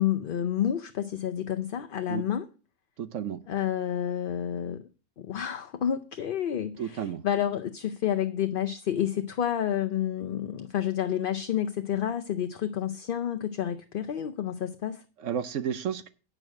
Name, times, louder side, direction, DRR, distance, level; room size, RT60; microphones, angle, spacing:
voice 1, 0.0-2.5 3.5-4.9 5.2-15.0, left 10 dB, 50° left, 0.7 m, -29 dB
voice 2, 3.0-3.4 6.8-7.2 15.2-16.1, right 8 dB, 70° right, 1.0 m, -32 dB
8.9 x 6.4 x 6.3 m
omnidirectional pair, 1.3 m